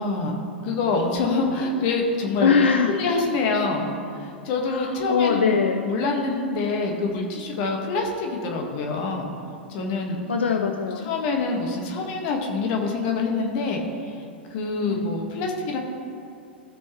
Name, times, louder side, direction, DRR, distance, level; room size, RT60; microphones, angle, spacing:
voice 1, 0.0-2.5 2.9-5.5 5.8-9.3 9.7-10.2 11.1-14.2 14.5-15.8, left 3 dB, 50° left, 1 dB, 1.6 m, -26 dB
voice 2, 2.4-3.0 4.7-5.8 10.3-11.1 14.8-15.1, left 5 dB, 80° left, 4 dB, 0.5 m, -22 dB
15.5 x 6.2 x 3.1 m, 2.4 s
figure-of-eight pair, 100°, 6 cm